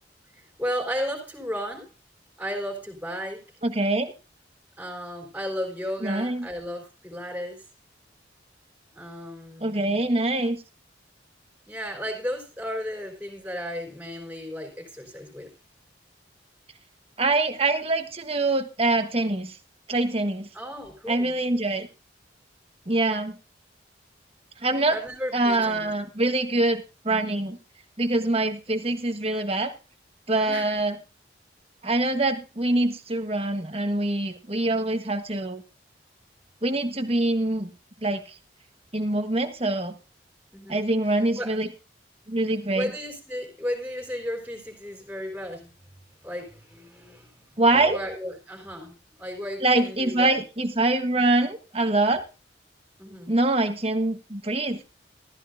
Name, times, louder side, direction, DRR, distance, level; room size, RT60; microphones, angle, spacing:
voice 1, 0.4-1.9 2.4-3.5 4.8-7.7 8.9-10.0 11.7-15.5 20.5-21.3 24.9-25.9 30.4-30.7 40.5-40.9 41.2-41.5 42.7-45.7 46.2-47.4 47.7-50.4 53.0-53.3, equal, 10° right, 2 dB, 3.9 m, -34 dB
voice 2, 3.6-4.1 6.0-6.5 9.6-10.6 17.2-19.6 19.9-20.5 21.1-21.9 22.9-23.4 24.6-25.0 25.3-27.6 28.0-29.7 30.3-30.9 31.8-35.6 36.6-37.7 38.0-38.2 38.9-39.9 40.7-41.7 42.3-42.9 47.6-48.0 49.6-52.2 53.3-54.8, right 2 dB, 30° right, 7 dB, 1.3 m, -24 dB
14.5 x 13.5 x 2.6 m, 0.30 s
head